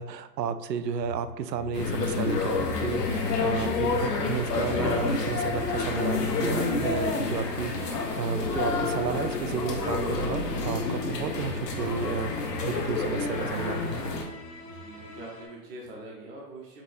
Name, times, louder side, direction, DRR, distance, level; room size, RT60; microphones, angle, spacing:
voice 1, 0.0-14.2, right 6 dB, 80° right, 12 dB, 0.6 m, -32 dB
sound 1, 1.0-15.4, left 1 dB, 15° left, 0.6 m, -44 dB
sound 2, 1.7-14.2, left 4 dB, 75° left, 1.2 m, -29 dB
voice 2, 14.5-16.8, right 1 dB, 35° right, -3 dB, 0.9 m, -44 dB
5.0 x 2.7 x 3.3 m, 1.1 s
hypercardioid pair, 135°, 49 cm